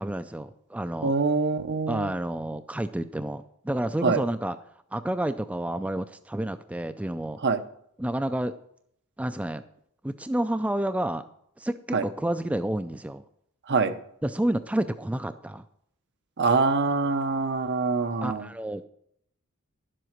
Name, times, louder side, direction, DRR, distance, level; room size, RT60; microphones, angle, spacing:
voice 1, 0.0-1.1 1.9-4.6 4.9-7.4 8.0-8.5 9.2-9.6 10.0-11.2 11.6-13.2 14.2-15.6 18.2-18.8, right 1 dB, 5° right, 9 dB, 0.3 m, -29 dB
voice 2, 1.0-2.1 4.0-4.2 7.4-7.6 11.9-12.0 13.7-13.9 16.4-18.5, right 4 dB, 55° right, 9 dB, 0.8 m, -24 dB
11.0 x 7.7 x 6.5 m, 0.71 s
head